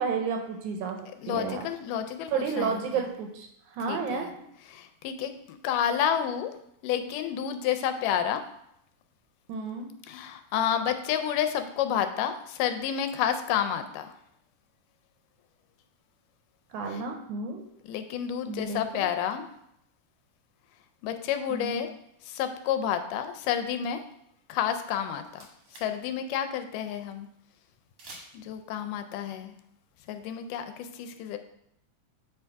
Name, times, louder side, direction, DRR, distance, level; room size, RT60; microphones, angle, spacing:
voice 1, 0.0-1.0 1.3-1.7 2.3-4.3 9.5-9.9 16.7-17.7 18.5-19.1 21.5-21.8, right 5 dB, 75° right, 3 dB, 2.0 m, -31 dB
voice 2, 1.2-3.1 3.9-4.3 4.7-6.5 6.8-8.4 10.1-14.2 16.9-17.0 17.8-19.5 21.0-21.9 22.2-24.0 24.5-25.5 25.7-27.3 28.3-29.6 30.1-31.4, left 9 dB, 85° left, 8 dB, 2.1 m, -30 dB
sound 1, 25.0-26.1 26.3-26.4 28.0-28.6, right 2 dB, 55° right, 1.5 m, -48 dB
8.0 x 3.5 x 4.5 m, 0.75 s
omnidirectional pair, 3.7 m